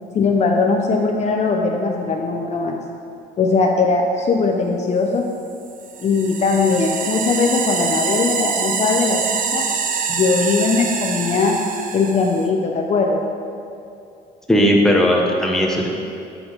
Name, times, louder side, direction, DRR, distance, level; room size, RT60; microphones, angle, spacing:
voice 1, 0.1-2.8 3.4-5.2 6.0-9.6 10.1-11.6 11.9-13.3, left 4 dB, 40° left, 1 dB, 0.7 m, -19 dB
sound 1, 5.7-12.5, right 6 dB, 50° right, 0.7 m, -25 dB
voice 2, 14.5-15.9, equal, 5° left, -1 dB, 1.0 m, -16 dB
6.2 x 6.1 x 5.0 m, 2.6 s
cardioid pair, 110°, 17 cm